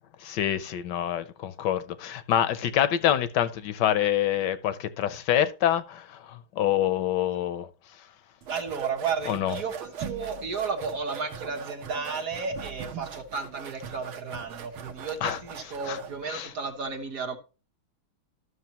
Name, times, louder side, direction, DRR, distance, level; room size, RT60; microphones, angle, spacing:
voice 1, 0.2-7.7 9.3-9.5 15.2-15.4 15.9-16.0 16.3-16.5, left 11 dB, 70° left, 1.1 m, -26 dB
sound 1, 8.4-16.2, right 7 dB, 90° right, 1.8 m, -40 dB
voice 2, 8.5-17.4, right 5 dB, 50° right, 1.3 m, -33 dB
12.5 x 6.4 x 2.9 m
omnidirectional pair, 2.2 m